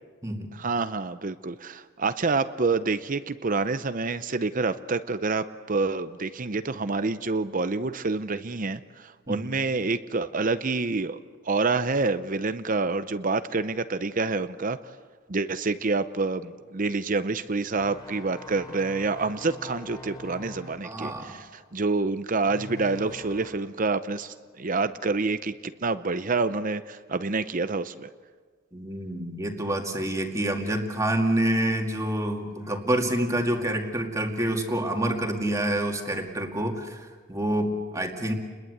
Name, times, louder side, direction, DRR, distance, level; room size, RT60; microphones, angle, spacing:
voice 1, 0.5-11.2 11.5-14.8 15.3-28.1, right 3 dB, 40° right, 12 dB, 0.7 m, -27 dB
sound 1, 17.7-23.7 24.1-24.4, left 2 dB, 20° left, 3.7 m, -45 dB
voice 2, 20.8-21.4 28.7-38.3, right 1 dB, 15° right, 2 dB, 2.3 m, -27 dB
30.0 x 21.5 x 8.1 m, 1.5 s
head